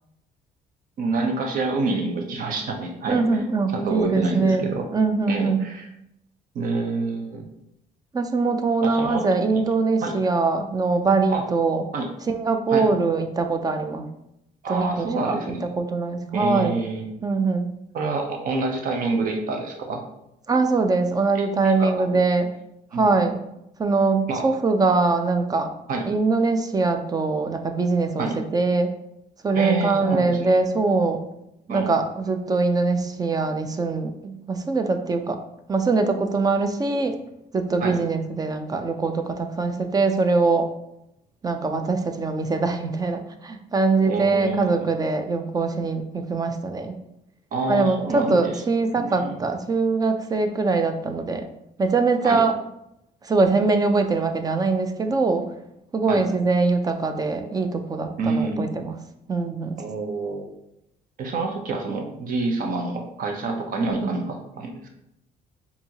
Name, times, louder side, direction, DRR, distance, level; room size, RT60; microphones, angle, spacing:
voice 1, 1.0-3.4 3.7-4.9 5.3-5.9 6.5-7.5 8.8-9.2 9.5-9.6 10.0-10.2 11.3-11.4 11.9-12.1 12.7-12.9 14.6-15.7 16.3-17.0 17.9-20.0 21.3-22.2 22.9-23.1 24.3-24.5 25.9-26.1 28.2-28.4 29.5-30.5 31.7-31.9 37.8-38.0 44.0-44.7 47.5-48.6 49.0-49.4 52.2-52.4 56.1-56.2 58.2-58.7 59.8-60.5 61.2-64.9, right 3 dB, 55° right, 2 dB, 0.8 m, -27 dB
voice 2, 3.1-5.6 8.1-11.8 12.3-14.1 14.7-15.4 15.8-16.7 17.2-17.7 20.5-22.5 22.9-23.4 23.8-25.7 26.0-28.3 28.5-28.9 29.4-31.2 31.7-35.4 35.7-37.2 37.5-40.7 41.4-47.0 47.7-51.4 51.8-52.5 53.2-55.5 55.9-58.9 59.3-59.8 63.8-64.1, right 3 dB, 20° right, 7 dB, 0.4 m, -22 dB
4.4 x 2.8 x 2.8 m, 0.82 s
cardioid pair, 110°, 17 cm